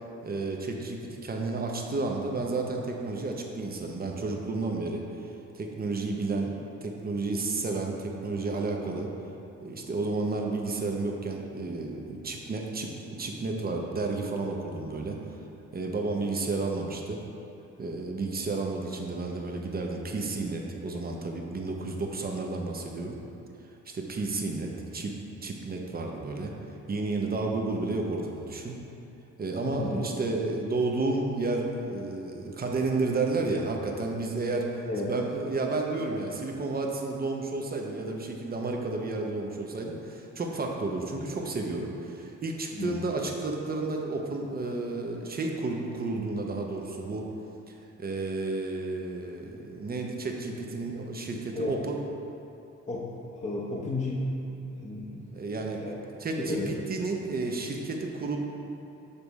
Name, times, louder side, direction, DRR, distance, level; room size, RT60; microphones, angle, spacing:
voice 1, 0.2-5.3 5.5-9.1 9.6-15.2 15.7-17.2 17.8-23.2 23.9-25.1 25.4-26.5 26.9-28.7 29.4-34.7 35.0-47.3 48.0-52.0 55.3-55.8 56.2-58.4, right 3 dB, 30° right, 1 dB, 0.7 m, -31 dB
voice 2, 29.7-30.0 34.9-35.1 42.7-43.0 51.6-51.8 52.9-53.1 53.4-55.2 55.8-55.9 56.4-56.7, left 2 dB, 25° left, -4 dB, 0.7 m, -32 dB
6.7 x 3.4 x 4.1 m, 2.8 s
cardioid pair, 90°, 30 cm